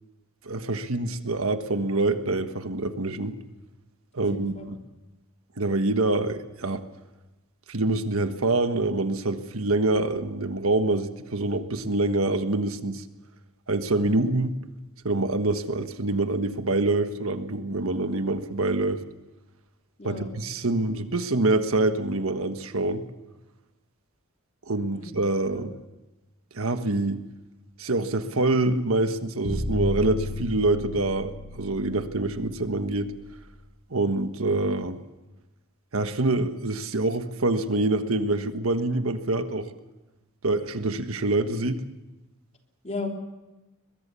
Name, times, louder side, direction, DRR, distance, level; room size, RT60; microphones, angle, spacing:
voice 1, 0.4-3.4 4.1-4.8 5.6-6.8 7.7-13.0 13.7-14.6 15.0-19.0 20.0-23.0 24.7-25.7 26.5-27.2 27.8-33.1 33.9-35.0 35.9-39.7 40.4-41.8, right 2 dB, 75° right, 9 dB, 1.4 m, -25 dB
voice 2, 4.1-4.8 20.0-20.3 24.9-25.7 42.8-43.1, left 3 dB, 30° left, 2 dB, 3.3 m, -36 dB
sound 1, 29.4-33.5, left 2 dB, 55° left, 5.4 m, -33 dB
22.5 x 22.0 x 6.9 m, 1.0 s
head